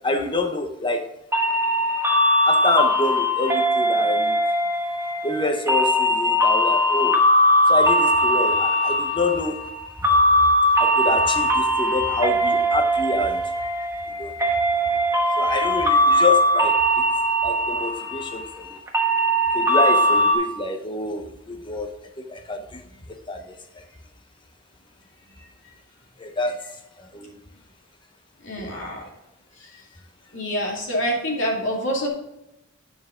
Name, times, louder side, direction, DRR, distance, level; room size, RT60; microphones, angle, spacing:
voice 1, 0.0-1.0 2.4-4.4 5.2-7.1 7.7-9.6 10.8-13.4 14.2-14.3 15.4-17.0 17.4-18.6 19.5-21.9 22.3-22.8 23.3-23.4 26.2-26.6 27.1-27.3 28.6-28.7, left 2 dB, 25° left, 6 dB, 1.0 m, -27 dB
sound 1, 1.3-20.3, equal, 15° right, 1.2 m, -20 dB
voice 2, 28.4-29.1 29.5-29.8 30.3-32.1, equal, 65° left, -2 dB, 2.4 m, -27 dB
9.4 x 6.8 x 3.8 m, 0.85 s
head